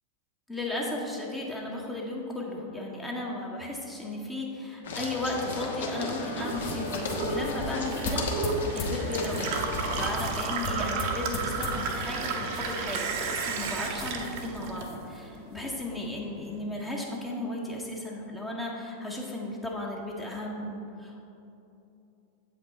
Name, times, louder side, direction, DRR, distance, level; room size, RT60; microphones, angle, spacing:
voice 1, 0.5-9.6 9.9-21.2, left 1 dB, 10° left, -2 dB, 0.8 m, -35 dB
sound 1, 4.8-10.1, left 2 dB, 60° left, 0.9 m, -35 dB
Gurgling / Water tap faucet / Sink (filling or washing), 5.8-15.3 15.7-16.5, right 4 dB, 50° right, 0.7 m, -33 dB
sound 2, 6.3-16.0, left 2 dB, 35° left, 1.0 m, -38 dB
7.7 x 5.3 x 4.1 m, 2.8 s
figure-of-eight pair, 90°, 0 cm